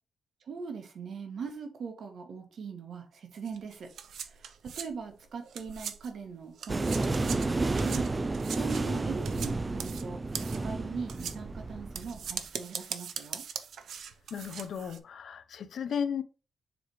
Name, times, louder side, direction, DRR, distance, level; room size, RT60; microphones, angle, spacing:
voice 1, 0.5-3.9 4.2-13.4, right 5 dB, 65° right, 1.3 m, -41 dB
sound 1, 3.5-6.2 6.5-15.0, right 7 dB, 85° right, 0.7 m, -41 dB
sound 2, 6.7-12.3, right 3 dB, 20° right, 0.4 m, -31 dB
voice 2, 14.3-16.2, left 7 dB, 65° left, 0.6 m, -34 dB
7.1 x 3.4 x 4.7 m
wide cardioid pair, 160°, 0 cm